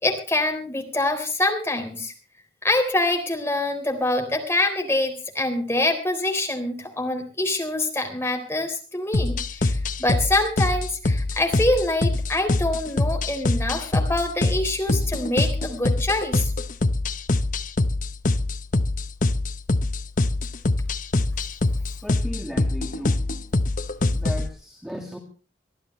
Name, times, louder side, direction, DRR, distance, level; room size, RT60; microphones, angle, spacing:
voice 1, 0.0-2.1 2.6-16.5, left 2 dB, 15° left, 3 dB, 3.8 m, -25 dB
sound 1, 9.1-24.5, left 2 dB, 45° left, 0.9 m, -24 dB
voice 2, 22.0-23.2 24.1-25.2, equal, ahead, 1 dB, 2.0 m, -36 dB
23.5 x 14.0 x 3.2 m, 0.36 s
head